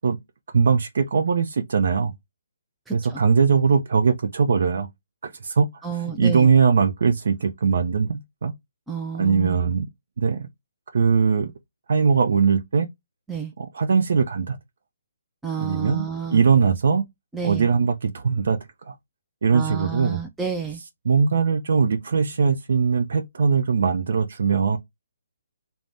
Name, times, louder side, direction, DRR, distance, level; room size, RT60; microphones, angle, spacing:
voice 1, 0.5-2.1 2.9-4.9 5.2-5.7 6.0-8.5 9.2-9.9 10.2-10.5 10.9-11.5 11.9-12.9 13.6-14.6 15.6-17.0 17.4-18.6 18.9-19.0 19.4-20.2 21.1-24.8, right 5 dB, 65° right, 0.5 m, -20 dB
voice 2, 2.9-3.2 5.8-6.5 8.9-9.6 13.3-13.5 15.4-16.4 17.3-17.7 19.5-20.8, right 6 dB, 5° right, 0.3 m, -30 dB
2.6 x 2.0 x 3.3 m
hypercardioid pair, 155°, 0 cm